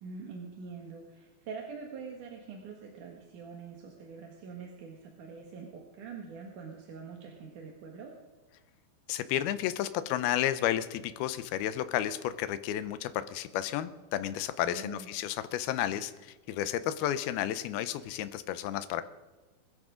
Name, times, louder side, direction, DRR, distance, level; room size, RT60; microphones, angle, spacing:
voice 1, 0.0-8.1 14.6-15.1, right 5 dB, 60° right, 0 dB, 2.7 m, -44 dB
voice 2, 9.1-19.0, left 12 dB, 80° left, 13 dB, 2.5 m, -32 dB
21.5 x 13.5 x 3.8 m, 1.3 s
omnidirectional pair, 4.7 m